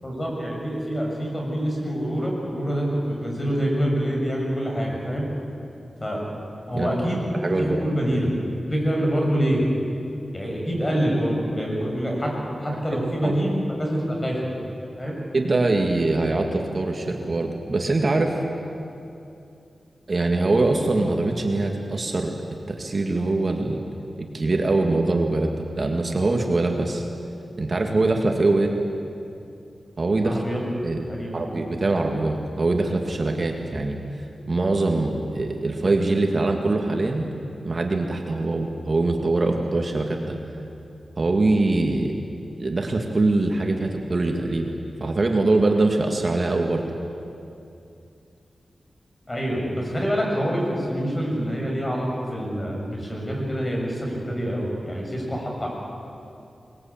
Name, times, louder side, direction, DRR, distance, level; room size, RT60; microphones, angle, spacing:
voice 1, 0.0-5.3 6.0-6.2 6.7-7.3 7.6-8.3 8.7-9.6 10.3-12.3 12.6-14.4 15.0-15.2 30.2-30.6 31.1-31.5 49.3-55.7, equal, 25° left, -1 dB, 7.2 m, -26 dB
voice 2, 7.4-7.9 13.2-13.3 15.3-18.4 20.1-22.3 22.7-23.8 24.2-27.0 27.6-28.7 30.0-30.4 30.8-31.0 31.3-34.0 34.5-37.3 37.6-40.4 41.2-42.1 42.6-44.7 45.0-46.8, right 2 dB, 45° right, 2 dB, 2.1 m, -23 dB
22.0 x 21.5 x 8.9 m, 2.6 s
wide cardioid pair, 95°, 0 cm